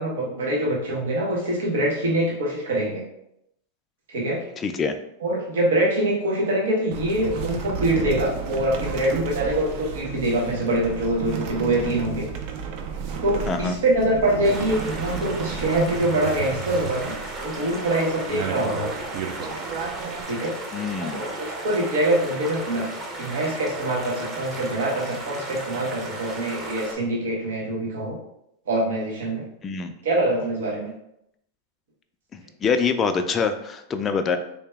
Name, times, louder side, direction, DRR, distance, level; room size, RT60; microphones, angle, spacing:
voice 1, 0.0-3.0 4.1-4.4 5.2-12.3 13.2-17.1 17.4-18.9 20.2-20.5 21.1-22.9 23.2-28.2 28.7-29.4 30.0-30.9, right 1 dB, 80° right, -3 dB, 1.1 m, -24 dB
voice 2, 4.6-5.0 13.5-13.8 20.7-21.3 29.6-30.0 32.3-34.4, left 5 dB, 25° left, 6 dB, 0.3 m, -25 dB
sound 1, 6.9-20.2, right 6 dB, 55° right, 0.5 m, -32 dB
sound 2, 14.4-26.9, right 2 dB, 25° right, 0.8 m, -35 dB
3.3 x 2.8 x 3.4 m, 0.79 s
hypercardioid pair, 125°, 0 cm